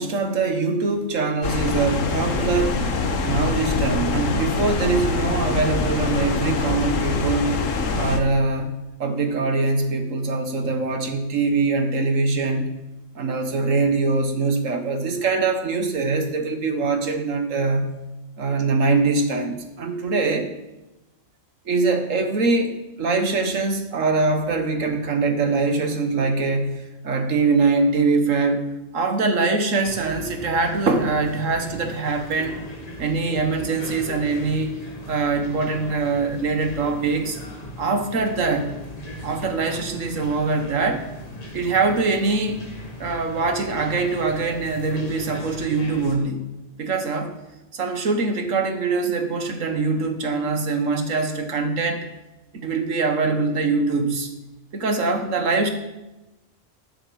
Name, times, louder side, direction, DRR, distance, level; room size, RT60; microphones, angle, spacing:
voice 1, 0.0-2.8 3.2-7.6 7.9-12.7 13.1-18.0 18.4-20.5 21.6-22.7 23.0-28.7 28.9-32.6 33.0-34.8 35.1-37.4 37.8-38.8 39.2-41.1 41.5-42.6 43.0-46.4 46.8-47.3 47.7-52.1 52.5-54.3 54.7-55.7, right 3 dB, 85° right, 6 dB, 1.7 m, -23 dB
sound 1, 1.4-8.2, left 4 dB, 85° left, 1.5 m, -24 dB
sound 2, 29.8-46.2, left 1 dB, 30° left, 1.4 m, -38 dB
9.6 x 7.7 x 7.2 m, 1.0 s
omnidirectional pair, 1.3 m